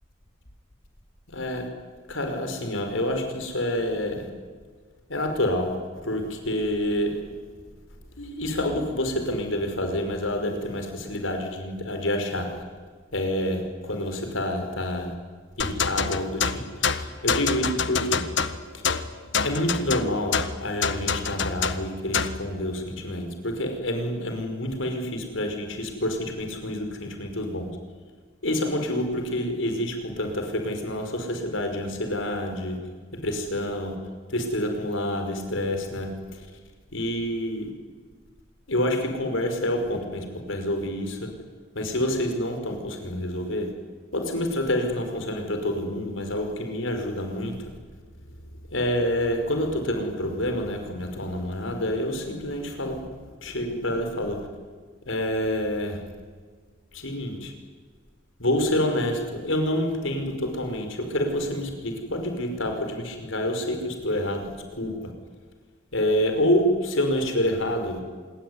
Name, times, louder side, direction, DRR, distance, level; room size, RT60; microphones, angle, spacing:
voice 1, 1.3-1.7 2.1-4.3 5.1-5.8 6.0-7.3 8.2-12.6 13.1-15.1 15.6-18.2 18.7-18.8 19.4-27.7 28.4-32.8 33.1-34.0 34.3-36.5 36.9-37.7 38.7-41.3 41.7-43.7 44.1-47.7 48.7-53.0 53.4-54.4 55.1-56.0 56.9-57.5 58.4-65.1 65.9-68.0, left 1 dB, 90° left, 6 dB, 5.5 m, -28 dB
sound 1, 15.6-22.4, left 6 dB, 70° left, 1.4 m, -27 dB
27.0 x 21.5 x 9.8 m, 1.5 s
head